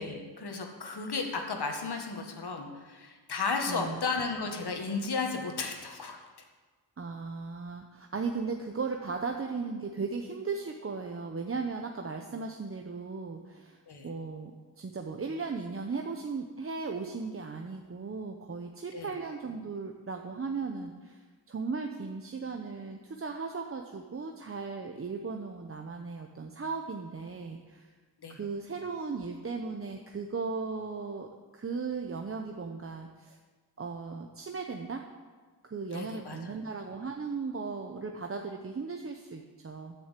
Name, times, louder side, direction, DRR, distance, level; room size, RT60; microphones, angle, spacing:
voice 1, 0.0-6.2 13.9-14.1 18.9-19.1 28.2-28.4 35.9-36.6, left 4 dB, 70° left, 3 dB, 1.8 m, -34 dB
voice 2, 3.7-4.0 7.0-27.8 28.3-33.4 33.8-35.0 35.6-39.9, right 4 dB, 35° right, 3 dB, 0.8 m, -37 dB
12.0 x 6.8 x 8.3 m, 1.4 s
wide cardioid pair, 160°, 41 cm